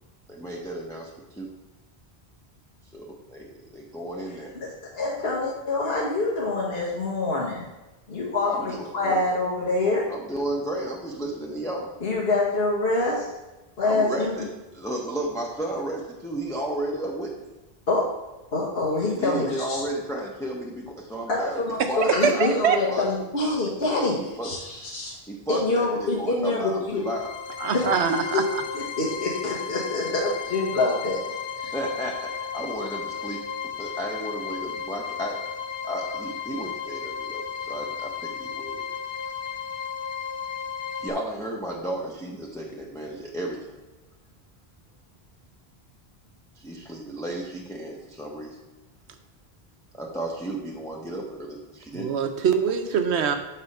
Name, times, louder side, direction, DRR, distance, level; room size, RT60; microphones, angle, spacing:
voice 1, 0.3-1.1 1.3-1.5 2.9-4.5 8.4-9.2 10.1-11.9 13.8-14.5 14.7-17.5 19.1-21.6 21.9-22.4 22.9-23.0 24.4-24.5 25.3-27.3 31.7-33.4 33.8-35.4 35.8-38.8 41.0-43.8 46.6-48.6 49.9-52.1, right 1 dB, 5° left, -2 dB, 0.7 m, -33 dB
voice 2, 4.9-7.7 8.1-10.1 12.0-13.2 13.8-14.4 17.9-18.1 18.5-19.8 21.3-25.2 25.5-27.0 27.7-27.9 28.3-28.4 28.7-31.2 31.6-31.7, left 2 dB, 65° left, -6 dB, 1.5 m, -26 dB
voice 3, 22.2-22.8 27.6-28.4 51.9-53.4, right 7 dB, 85° right, 7 dB, 1.0 m, -23 dB
sound 1, 26.9-41.1, left 7 dB, 85° left, 1.0 m, -34 dB
6.8 x 4.3 x 5.4 m, 1.1 s
omnidirectional pair, 1.1 m